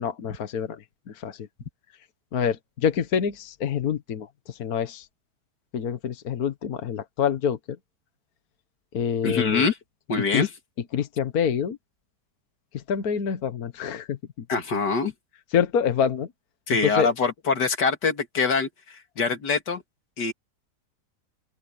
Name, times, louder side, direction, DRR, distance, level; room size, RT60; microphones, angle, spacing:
voice 1, 0.0-1.5 2.3-5.1 5.7-7.6 8.9-9.7 10.2-10.5 10.9-11.8 12.7-14.4 15.5-16.3 16.8-17.1, left 7 dB, 60° left, 1.6 m, -26 dB
voice 2, 9.2-9.7 10.1-10.5 14.5-15.1 16.7-19.8 20.2-20.3, left 4 dB, 80° left, 2.7 m, -24 dB
open air
omnidirectional pair, 1.8 m